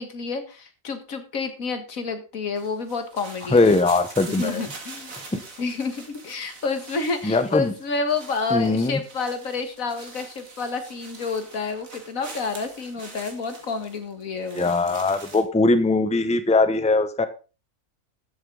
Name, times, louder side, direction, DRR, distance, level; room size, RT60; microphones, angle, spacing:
voice 1, 0.0-3.8 4.3-5.1 5.6-14.7, left 4 dB, 85° left, 8 dB, 2.1 m, -29 dB
sound 1, 2.6-15.4, right 3 dB, 80° right, 2.5 m, -44 dB
voice 2, 3.5-4.6 5.3-5.4 7.2-7.7 8.5-9.0 14.5-17.3, left 3 dB, 5° left, 10 dB, 0.7 m, -20 dB
13.0 x 7.9 x 3.9 m, 0.34 s
omnidirectional pair, 1.4 m